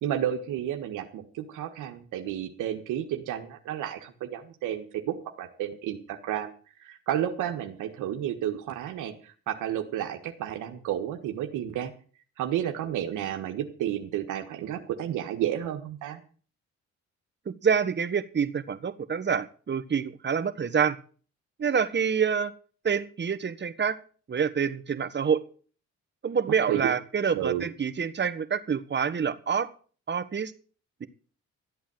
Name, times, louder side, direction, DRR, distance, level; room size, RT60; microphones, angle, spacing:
voice 1, 0.0-6.5 6.8-11.9 12.4-16.2 26.7-26.9 27.3-27.7, right 11 dB, 90° right, 5 dB, 1.6 m, -31 dB
voice 2, 17.6-21.0 21.6-22.5 22.8-24.0 24.3-25.4 26.2-29.7 30.1-30.5 31.0-31.1, right 6 dB, 35° right, 11 dB, 1.4 m, -27 dB
13.5 x 8.4 x 7.8 m, 0.41 s
cardioid pair, 90°, 30 cm